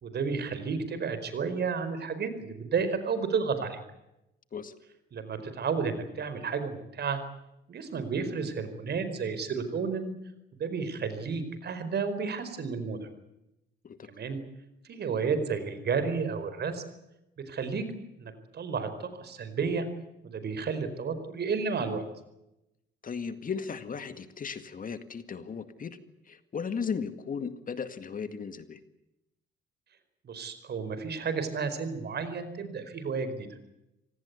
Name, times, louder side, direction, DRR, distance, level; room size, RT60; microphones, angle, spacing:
voice 1, 0.0-3.8 5.1-7.2 7.7-10.1 10.5-13.1 14.1-14.4 14.9-16.8 17.5-17.8 18.2-19.9 20.3-22.0 30.2-33.5, right 5 dB, 55° right, 11 dB, 4.8 m, -32 dB
voice 2, 23.0-26.0 26.3-28.8, left 6 dB, 45° left, 11 dB, 2.1 m, -36 dB
26.0 x 18.5 x 8.3 m, 0.88 s
cardioid pair, 90°, 20 cm